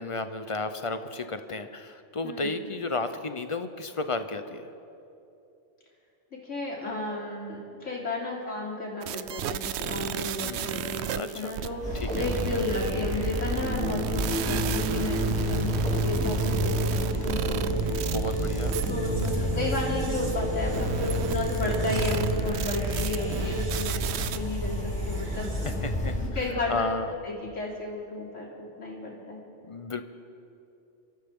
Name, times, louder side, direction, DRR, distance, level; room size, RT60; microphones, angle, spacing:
voice 1, 0.0-4.7 10.4-10.8 11.1-11.5 11.9-12.6 17.6-17.8 18.1-18.8 25.8-26.2 26.5-27.1 29.7-30.0, left 3 dB, 35° left, 9 dB, 0.6 m, -33 dB
voice 2, 2.2-2.6 6.3-18.0 18.9-25.5 26.2-26.9 27.2-29.4, left 2 dB, 85° left, -4 dB, 3.5 m, -33 dB
sound 1, 9.0-18.9 19.2-19.3 20.7-24.4, right 10 dB, 70° right, 0.8 m, -35 dB
sound 2, 11.8-26.3, equal, 5° left, 2.5 m, -31 dB
sound 3, 13.6-25.9, right 2 dB, 85° right, 1.8 m, -32 dB
29.0 x 13.5 x 3.7 m, 2.7 s
omnidirectional pair, 1.2 m